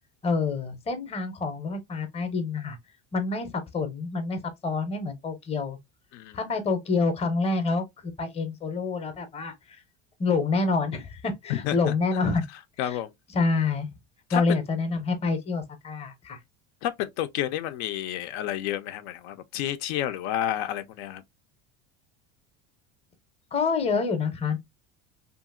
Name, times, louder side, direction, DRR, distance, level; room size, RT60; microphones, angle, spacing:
voice 1, 0.2-2.8 3.1-5.8 6.3-9.8 10.2-12.4 12.8-13.0 13.3-13.9 14.3-16.4 23.5-24.6, left 4 dB, 20° left, 0.6 m, -27 dB
voice 2, 12.8-13.1 14.3-14.6 16.8-21.2, left 12 dB, 80° left, 0.5 m, -30 dB
2.8 x 2.5 x 2.3 m
cardioid pair, 130°, 32 cm